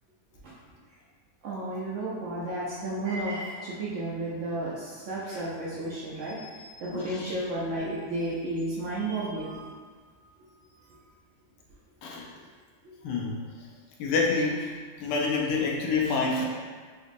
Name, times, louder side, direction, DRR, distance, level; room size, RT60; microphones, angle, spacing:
voice 1, 1.4-9.7, right 1 dB, 70° right, -6 dB, 0.7 m, -32 dB
voice 2, 6.9-7.3 12.0-12.3 13.0-13.4 14.0-14.7 15.0-16.5, left 4 dB, 85° left, -2 dB, 1.2 m, -27 dB
4.0 x 2.6 x 2.5 m, 1.5 s
omnidirectional pair, 1.8 m